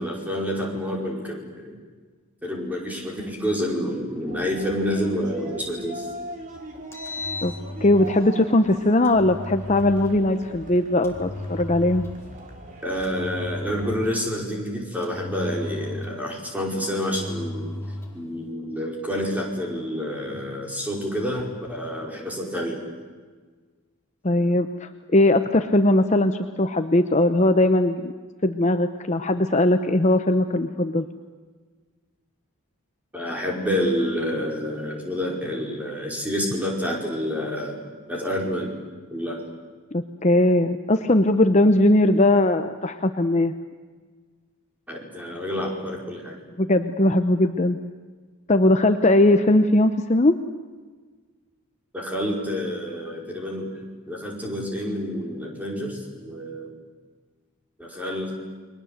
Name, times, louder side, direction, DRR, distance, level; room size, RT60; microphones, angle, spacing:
voice 1, 0.0-1.8 2.4-6.1 12.8-17.7 18.1-22.8 33.1-37.8 38.1-38.7 39.1-39.4 44.9-46.3 51.9-53.7 54.1-56.7 57.8-58.3, equal, 5° right, -1 dB, 5.1 m, -28 dB
sound 1, 4.3-13.9, right 1 dB, 35° right, 3.6 m, -41 dB
Engine, 6.7-8.2 9.0-10.2 11.0-12.3 13.0-14.3 15.0-16.4 17.0-18.2, left 1 dB, 10° left, 3.9 m, -35 dB
voice 2, 7.8-12.1 24.2-28.1 28.4-31.0 39.9-43.5 46.6-47.8 48.5-50.3, left 1 dB, 30° left, 8 dB, 0.9 m, -19 dB
29.5 x 22.5 x 8.1 m, 1.4 s
head